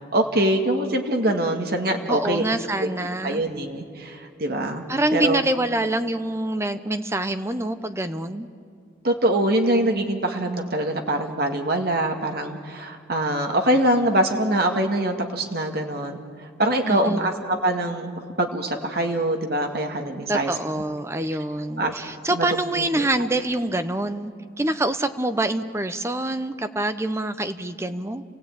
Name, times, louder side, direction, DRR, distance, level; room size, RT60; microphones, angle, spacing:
voice 1, 0.1-2.4 2.8-2.9 3.2-4.8 5.1-5.4 9.0-20.5 21.8-21.9 22.3-22.5 22.8-23.1, right 1 dB, 55° right, 3 dB, 1.9 m, -24 dB
voice 2, 2.1-3.4 4.9-8.5 16.8-17.3 20.1-24.3 24.6-28.2, right 1 dB, 15° right, 10 dB, 0.8 m, -26 dB
29.0 x 16.5 x 8.9 m, 2.3 s
head